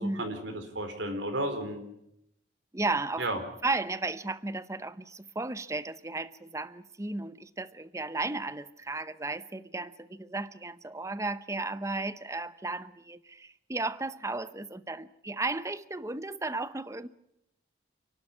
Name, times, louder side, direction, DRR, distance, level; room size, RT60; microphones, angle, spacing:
voice 1, 0.0-1.8 3.2-3.4, right 1 dB, 90° right, 4.2 m, -33 dB
voice 2, 2.7-3.3 3.6-17.1, right 2 dB, 15° right, 0.8 m, -34 dB
28.5 x 12.0 x 9.9 m
head